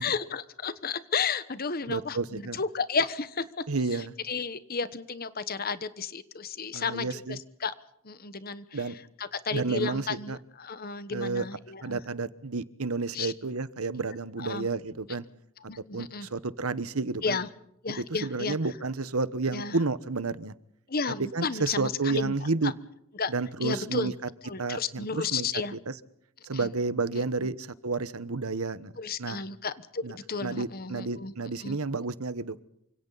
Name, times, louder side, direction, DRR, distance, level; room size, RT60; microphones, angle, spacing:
voice 1, 0.0-3.5 4.3-7.7 8.0-8.6 9.2-12.0 13.1-13.3 14.4-14.7 15.7-16.3 17.2-17.5 17.8-18.6 19.5-19.8 20.9-22.3 22.6-22.7 23.2-23.3 23.6-24.1 24.4-25.7 26.5-26.7 29.0-31.3 31.6-31.8, left 5 dB, 45° left, 14 dB, 1.2 m, -32 dB
voice 2, 1.9-2.6 3.7-4.1 6.7-7.4 8.7-9.0 9.5-10.4 11.1-11.5 11.8-15.2 15.9-17.4 18.0-20.5 21.2-22.7 23.3-24.1 24.6-26.0 26.4-28.9 29.2-29.4 30.0-32.6, right 3 dB, 85° right, 16 dB, 1.2 m, -31 dB
28.5 x 26.0 x 4.1 m, 0.74 s
head